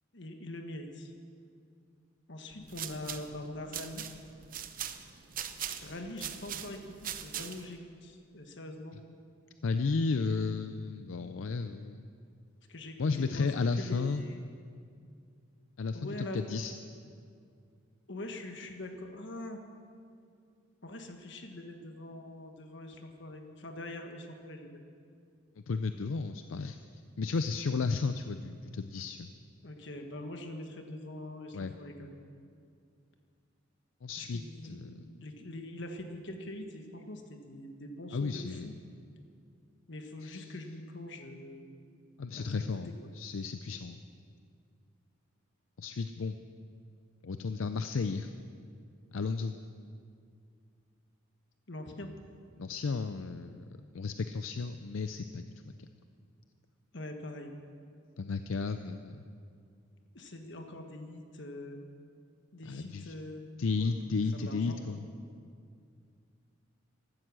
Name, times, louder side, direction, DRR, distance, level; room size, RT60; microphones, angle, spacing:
voice 1, 0.1-1.1 2.3-4.0 5.8-9.0 12.7-13.5 13.8-14.4 15.9-16.4 18.1-19.6 20.8-24.7 29.6-32.2 34.2-38.7 39.9-41.7 42.3-43.1 51.7-52.1 56.9-57.5 60.1-61.8 62.5-63.4 63.8-63.9 64.3-65.0, left 1 dB, 60° left, 5 dB, 1.5 m, -43 dB
sound 1, 2.5-7.8, right 9 dB, 45° right, 0.7 m, -41 dB
voice 2, 9.6-12.0 13.0-14.2 15.8-16.7 25.7-26.8 27.2-29.3 31.5-31.7 34.0-35.0 38.1-38.7 40.2-40.4 42.2-44.0 45.8-46.3 47.2-48.3 49.1-49.6 52.6-53.6 53.9-55.4 58.2-59.3 62.7-63.1 63.6-65.0, left 4 dB, 80° left, 9 dB, 0.5 m, -33 dB
15.5 x 12.5 x 6.3 m, 2.3 s
head